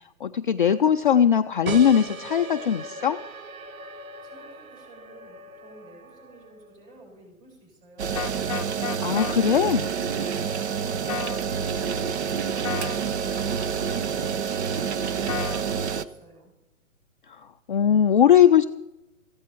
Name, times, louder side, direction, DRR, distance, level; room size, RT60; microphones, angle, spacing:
voice 1, 0.2-3.2 9.0-9.8 17.7-18.6, left 9 dB, 40° left, 6 dB, 0.4 m, -19 dB
sound 1, 1.7-6.9, right 3 dB, 70° right, 1.3 m, -38 dB
voice 2, 4.2-8.2, right 2 dB, 20° right, -1 dB, 7.2 m, -51 dB
sound 2, 8.0-16.0, right 7 dB, 50° right, 0.9 m, -28 dB
sound 3, 8.2-9.3 11.1-11.4 12.6-13.0 15.3-15.6, left 12 dB, 25° left, 0.8 m, -32 dB
17.0 x 15.5 x 4.5 m, 0.93 s
hypercardioid pair, 150°, 42 cm